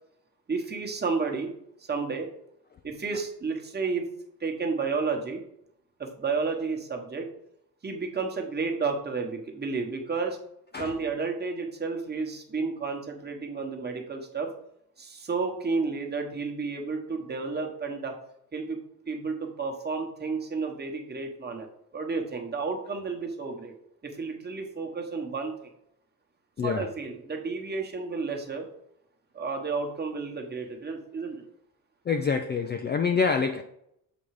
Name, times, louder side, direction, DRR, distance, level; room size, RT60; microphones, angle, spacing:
voice 1, 0.5-1.5 1.9-2.3 2.8-4.0 4.4-5.4 6.0-7.3 7.8-10.4 10.8-14.5 15.0-18.2 18.5-18.8 19.1-21.7 21.9-23.7 24.0-25.5 26.6-28.7 29.3-31.4, right 4 dB, 25° right, 2 dB, 1.2 m, -31 dB
voice 2, 26.6-26.9 32.1-33.6, left 5 dB, 30° left, 6 dB, 0.3 m, -26 dB
7.2 x 3.9 x 4.8 m, 0.74 s
cardioid pair, 140°, 39 cm